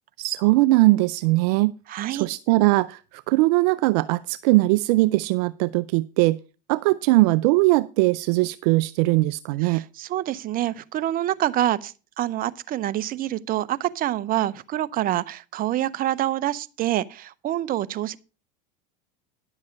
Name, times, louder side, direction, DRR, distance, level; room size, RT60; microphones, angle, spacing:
voice 1, 0.2-1.7 2.1-6.4 6.7-9.8, right 21 dB, 70° right, 0.5 m, -20 dB
voice 2, 1.9-2.3 9.6-18.2, right 13 dB, 45° right, 0.8 m, -26 dB
11.0 x 7.3 x 5.2 m
hypercardioid pair, 95°, 21 cm